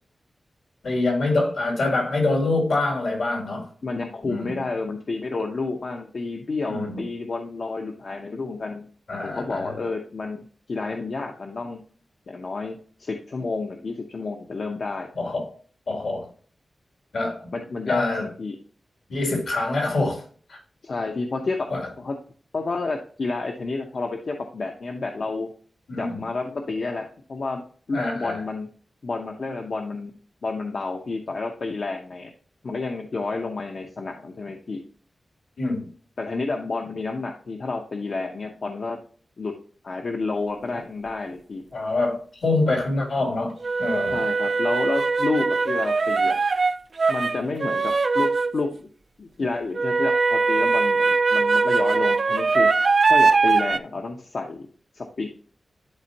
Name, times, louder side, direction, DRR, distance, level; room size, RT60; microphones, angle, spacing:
voice 1, 0.8-3.7 4.2-4.6 6.7-7.0 9.1-9.7 15.1-15.5 15.9-16.3 17.1-17.5 17.9-18.3 19.1-20.2 20.5-20.6 21.7-21.9 25.9-26.2 27.9-28.4 35.6-35.9 41.7-44.2, left 2 dB, 80° left, 2.5 m, -25 dB
voice 2, 3.8-8.9 9.2-11.8 12.3-15.1 17.5-18.6 20.8-21.7 22.0-22.1 22.5-25.5 26.0-28.7 29.0-30.1 30.4-32.3 32.6-34.8 36.2-39.0 39.4-39.5 39.8-41.6 44.1-46.4 47.1-48.9 49.2-52.7 53.1-54.7 54.9-55.3, left 3 dB, 50° left, 0.7 m, -30 dB
sound 1, 40.8-40.9 43.6-48.7 49.8-53.8, right 4 dB, 45° right, 0.3 m, -21 dB
10.5 x 4.3 x 2.7 m
wide cardioid pair, 170°, 0 cm